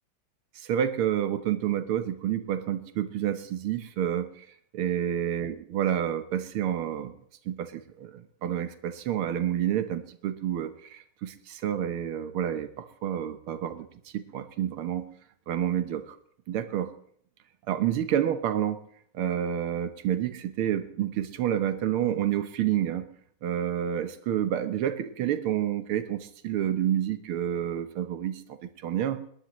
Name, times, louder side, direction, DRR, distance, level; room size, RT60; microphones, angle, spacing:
voice 1, 0.6-4.5 4.7-7.1 7.5-13.9 14.1-15.1 15.5-16.2 16.5-16.9 17.7-18.8 19.1-23.1 23.4-28.4 28.8-29.2, right 10 dB, 90° right, 9 dB, 1.9 m, -29 dB
21.0 x 19.5 x 3.1 m, 0.62 s
omnidirectional pair, 2.3 m